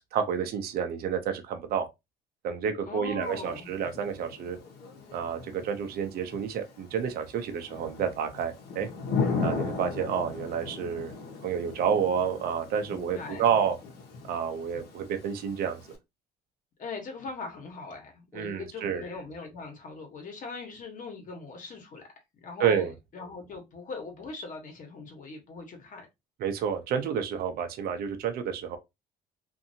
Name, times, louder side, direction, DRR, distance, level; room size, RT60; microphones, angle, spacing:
voice 1, 0.1-1.9 2.4-4.6 5.1-8.9 9.4-11.1 11.4-13.8 14.2-15.8 18.3-19.0 22.6-22.9 26.4-28.8, right 7 dB, 65° right, 0.6 m, -29 dB
voice 2, 2.9-3.7 12.8-13.5 16.8-22.1 22.3-26.1, left 3 dB, 50° left, 1.1 m, -40 dB
Thunder / Rain, 3.2-16.0, left 4 dB, 70° left, 1.0 m, -37 dB
2.6 x 2.6 x 2.6 m
cardioid pair, 110°, 17 cm